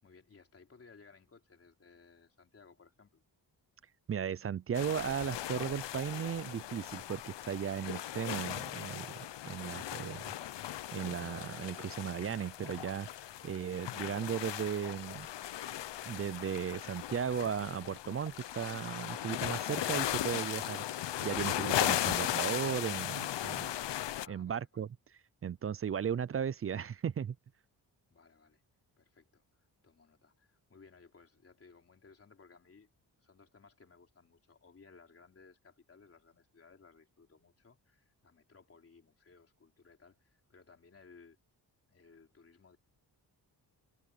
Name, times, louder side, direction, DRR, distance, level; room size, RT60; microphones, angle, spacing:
voice 1, 0.0-3.3 24.2-24.8 28.1-28.6 29.0-32.9 33.2-41.4 41.9-42.8, left 4 dB, 35° left, 3.6 m, -60 dB
voice 2, 4.1-10.2 10.9-13.1 13.4-15.3 16.1-20.8 21.2-23.7 24.3-24.9 25.4-27.4, right 8 dB, 35° right, 0.4 m, -36 dB
sound 1, 4.7-24.3, left 12 dB, 85° left, 0.8 m, -37 dB
wide cardioid pair, 170°, 41 cm